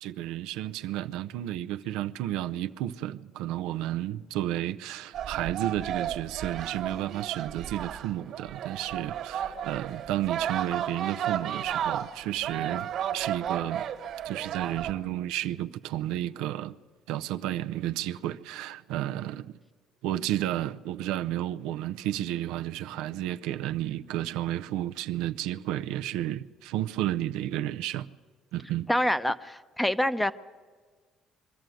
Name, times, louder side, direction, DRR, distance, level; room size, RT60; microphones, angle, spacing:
voice 1, 0.0-13.9 14.2-16.8 17.1-19.6 20.0-28.1 28.5-28.9, right 13 dB, 90° right, 0.5 m, -32 dB
sound 1, 5.1-14.9, right 9 dB, 60° right, 1.6 m, -33 dB
voice 2, 28.9-30.3, left 1 dB, 5° left, 0.7 m, -26 dB
23.0 x 13.0 x 9.2 m
cardioid pair, 105°, 0 cm